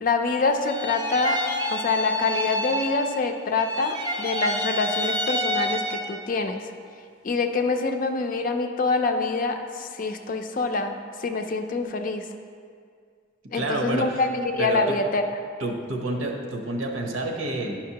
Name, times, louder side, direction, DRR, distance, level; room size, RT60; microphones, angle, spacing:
voice 1, 0.0-1.4 1.7-6.6 7.2-12.3 13.5-15.2, left 3 dB, 45° left, 6 dB, 0.4 m, -25 dB
sound 1, 0.6-3.3 3.5-6.3, equal, 20° right, 0.6 m, -28 dB
voice 2, 13.5-14.2 14.6-15.0 15.6-17.8, right 2 dB, 90° right, 1 dB, 0.9 m, -29 dB
10.0 x 5.8 x 2.8 m, 2.2 s
head